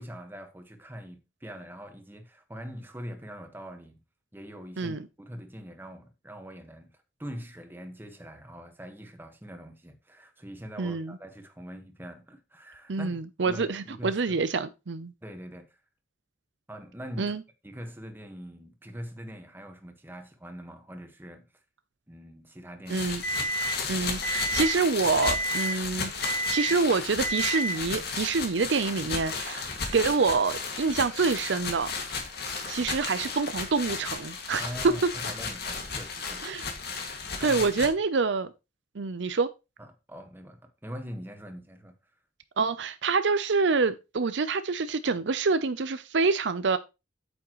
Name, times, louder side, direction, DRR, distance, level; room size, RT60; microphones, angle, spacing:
voice 1, 0.0-4.0 4.3-6.9 7.2-14.4 15.2-15.8 16.7-17.3 17.6-21.4 22.1-23.1 34.6-36.5 37.3-37.7 39.8-41.9, equal, 10° right, 1.4 m, -43 dB
voice 2, 10.8-11.2 12.9-15.1 17.2-17.4 22.9-23.2 23.9-29.7 29.9-31.9 32.7-35.1 36.4-36.6 37.4-38.5 38.9-39.5 42.6-46.8, right 4 dB, 70° right, 0.6 m, -26 dB
sound 1, 22.9-37.9, left 5 dB, 60° left, 2.1 m, -34 dB
Alarm, 23.2-23.7 24.2-24.7 25.2-25.7 26.2-26.7 27.2-27.7, right 1 dB, 75° left, 1.6 m, -29 dB
8.8 x 8.5 x 3.1 m
head